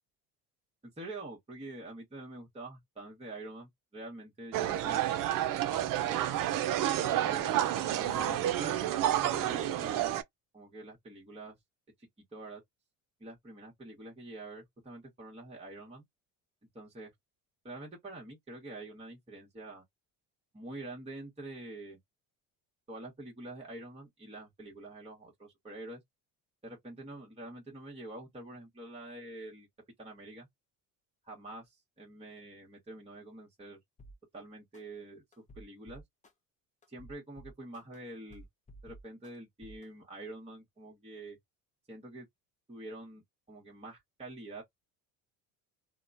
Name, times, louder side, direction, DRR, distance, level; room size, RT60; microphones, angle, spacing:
voice 1, 1.0-6.4 7.2-8.8 9.2-10.2 10.5-11.6 12.3-12.6 13.2-16.0 16.7-17.1 17.6-19.8 20.5-22.0 22.9-26.0 26.6-29.7 30.0-30.5 31.2-33.8 34.3-36.0 36.9-38.4 38.8-41.4 41.9-42.3 42.7-44.6, right 2 dB, 15° right, 1.2 m, -46 dB
sound 1, 4.5-10.2, right 12 dB, 50° right, 0.6 m, -30 dB
sound 2, 34.0-34.2 34.7-34.8 35.3-36.3 36.8-38.0 38.3-39.3 39.6-39.8, right 1 dB, 15° left, 0.7 m, -52 dB
2.9 x 2.2 x 2.5 m
supercardioid pair, 80°, 43 cm